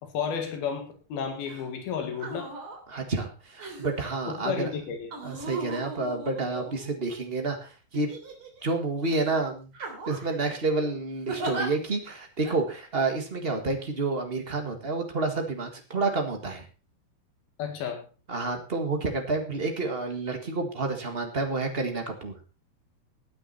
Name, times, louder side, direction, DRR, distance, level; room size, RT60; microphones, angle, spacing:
voice 1, 0.0-2.5 4.3-5.1 17.6-18.1, left 7 dB, 80° left, 6 dB, 3.8 m, -32 dB
sound 1, 1.4-1.6 2.1-2.8 3.6-4.1 5.1-7.2 7.9-8.7 9.1-9.3 9.7-10.3 11.3-11.7 12.4-12.6, right 2 dB, 35° right, 3.6 m, -37 dB
voice 2, 2.9-4.7 5.2-8.1 8.6-9.7 10.1-16.7 18.3-22.3, right 3 dB, 70° right, 4 dB, 0.5 m, -29 dB
17.0 x 9.7 x 4.2 m, 0.33 s
omnidirectional pair, 4.3 m